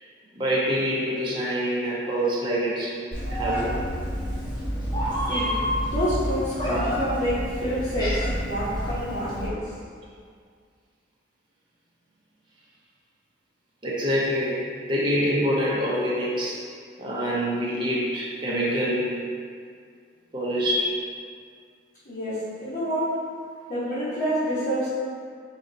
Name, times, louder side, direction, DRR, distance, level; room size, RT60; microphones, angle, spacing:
voice 1, 0.4-2.9 3.3-3.8 13.8-14.6 14.9-16.6 17.0-19.1 20.3-20.9, equal, 25° right, -7 dB, 0.7 m, -25 dB
Meow, 3.1-9.5, equal, 25° left, 0.8 m, -28 dB
voice 2, 5.8-9.6 22.0-23.1 23.7-24.9, equal, 45° left, -13 dB, 1.0 m, -28 dB
4.0 x 2.8 x 3.9 m, 2.1 s
head